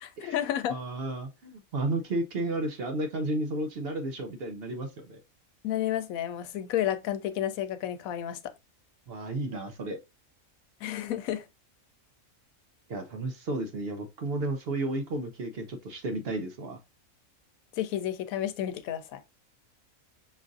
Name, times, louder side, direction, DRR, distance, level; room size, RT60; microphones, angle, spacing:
voice 1, 0.0-0.8 5.6-8.4 10.8-11.4 17.8-19.2, left 11 dB, 85° left, 1.0 m, -31 dB
voice 2, 0.7-5.2 9.1-10.0 12.9-16.8, right 2 dB, 55° right, 0.7 m, -32 dB
5.7 x 2.5 x 2.5 m
omnidirectional pair, 1.4 m